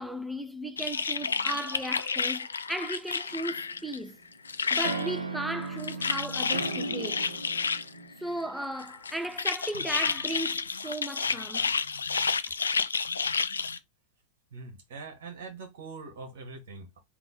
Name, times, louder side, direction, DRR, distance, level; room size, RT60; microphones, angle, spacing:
voice 1, 0.0-4.2 4.7-7.3 8.2-11.7 12.5-12.6, right 1 dB, 5° right, 0.4 m, -36 dB
sound 1, 0.8-4.0 4.3-5.1 5.6-7.9 8.8-13.8, left 5 dB, 75° left, 0.4 m, -30 dB
sound 2, 3.3-4.2 4.8-8.5, right 3 dB, 75° right, 0.7 m, -36 dB
voice 2, 14.5-17.0, right 4 dB, 55° right, 1.4 m, -43 dB
3.8 x 2.8 x 3.9 m
figure-of-eight pair, 90°, 0 cm